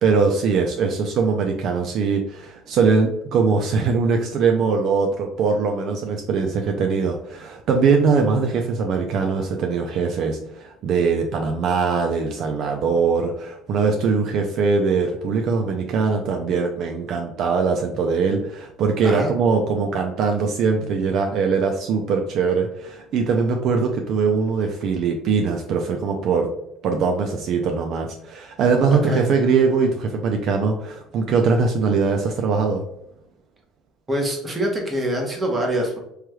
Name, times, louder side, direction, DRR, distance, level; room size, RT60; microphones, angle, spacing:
voice 1, 0.0-26.5 26.8-32.8, right 5 dB, 55° right, 3 dB, 0.4 m, -21 dB
voice 2, 28.9-29.2 34.1-36.0, right 1 dB, 20° right, 0 dB, 1.0 m, -24 dB
3.1 x 3.0 x 2.3 m, 0.80 s
supercardioid pair, 115°, 0 cm